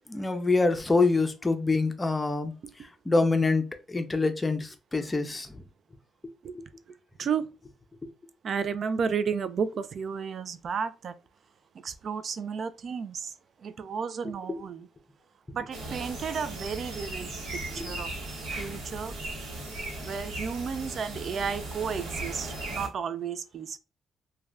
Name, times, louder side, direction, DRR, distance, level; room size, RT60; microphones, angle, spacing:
voice 1, 0.1-2.5 3.1-5.6 6.5-6.6 14.5-14.6 17.8-17.9 18.5-18.7, left 3 dB, 20° left, 0.5 m, -26 dB
voice 2, 8.4-11.1 11.8-13.3 13.6-14.9 15.5-17.3 17.7-18.1 18.6-19.1 20.0-23.8, right 6 dB, 55° right, 0.3 m, -32 dB
sound 1, 15.7-22.9, right 2 dB, 85° right, 0.9 m, -37 dB
2.4 x 2.2 x 3.2 m
cardioid pair, 90°, 0 cm